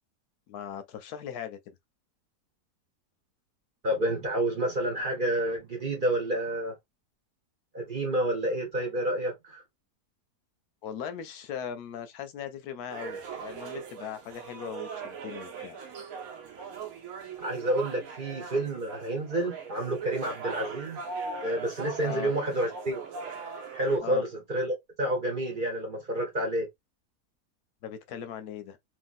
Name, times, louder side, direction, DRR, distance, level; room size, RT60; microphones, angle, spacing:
voice 1, 0.5-1.7 10.8-15.8 22.0-22.3 24.0-24.2 27.8-28.8, left 9 dB, 75° left, 1.1 m, -39 dB
voice 2, 3.8-6.7 7.7-9.6 17.4-21.0 21.4-23.0 23.7-26.7, right 1 dB, 35° right, 1.0 m, -29 dB
sound 1, 12.9-24.0, right 5 dB, 65° right, 1.1 m, -40 dB
3.1 x 2.6 x 2.4 m
omnidirectional pair, 1.7 m